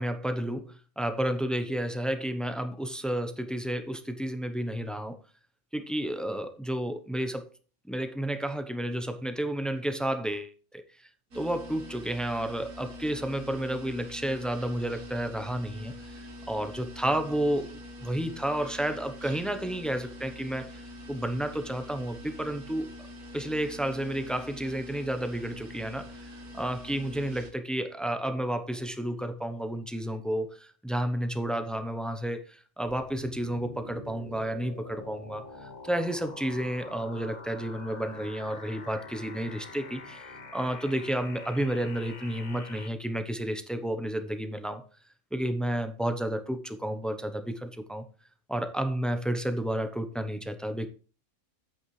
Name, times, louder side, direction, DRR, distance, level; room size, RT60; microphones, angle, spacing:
voice 1, 0.0-5.2 5.7-7.5 7.8-10.8 11.3-16.1 16.5-20.8 21.1-22.9 23.3-40.2 40.5-44.9 45.3-48.0 48.5-50.9, right 1 dB, ahead, 0.5 m, -31 dB
sound 1, 11.3-27.5, left 1 dB, 75° right, 2.0 m, -45 dB
sound 2, 32.9-42.9, left 3 dB, 35° left, 1.0 m, -45 dB
9.0 x 8.5 x 3.2 m
omnidirectional pair, 1.5 m